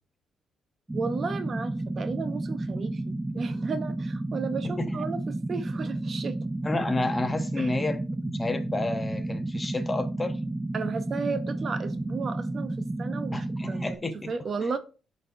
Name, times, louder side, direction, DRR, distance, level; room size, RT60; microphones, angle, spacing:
sound 1, 0.9-14.0, right 2 dB, 15° right, 0.4 m, -32 dB
voice 1, 0.9-6.5 7.6-7.7 10.7-14.0 14.3-14.8, right 5 dB, 45° right, 0.7 m, -34 dB
voice 2, 4.6-5.0 6.6-10.4 13.3-14.3, left 2 dB, 20° left, 0.9 m, -31 dB
12.0 x 4.1 x 2.6 m
cardioid pair, 90°, 0 cm